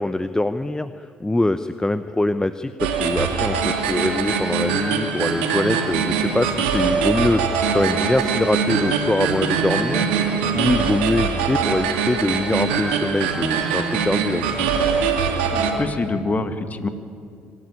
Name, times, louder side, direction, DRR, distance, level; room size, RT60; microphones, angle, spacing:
voice 1, 0.0-14.7, left 2 dB, 10° left, 11 dB, 0.7 m, -23 dB
sound 1, 2.8-15.7, right 6 dB, 80° right, 2.3 m, -22 dB
voice 2, 15.5-16.9, left 3 dB, 30° left, 8 dB, 2.0 m, -25 dB
24.0 x 13.5 x 9.9 m, 2.3 s
hypercardioid pair, 60°, 6 cm